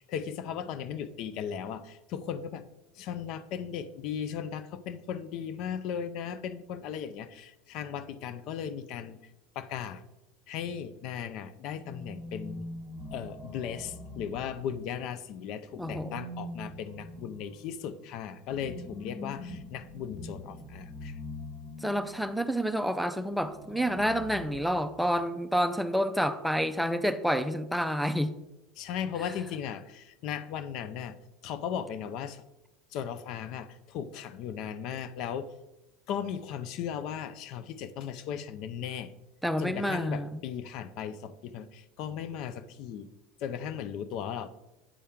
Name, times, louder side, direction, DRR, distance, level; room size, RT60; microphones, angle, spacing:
voice 1, 0.0-2.6 3.0-9.2 9.6-10.0 10.5-12.7 13.1-21.1 28.8-31.2 31.4-32.4 32.9-35.5 36.1-39.1 39.6-43.1 43.4-44.5, left 8 dB, 55° left, 13 dB, 0.5 m, -37 dB
sound 1, 11.7-15.0 15.7-22.3 23.3-25.2, left 1 dB, 40° left, 1.2 m, -43 dB
voice 2, 15.8-16.2 21.8-28.3 39.4-40.5, equal, ahead, 9 dB, 0.5 m, -29 dB
8.5 x 4.3 x 3.6 m, 0.97 s
hypercardioid pair, 95°, 0 cm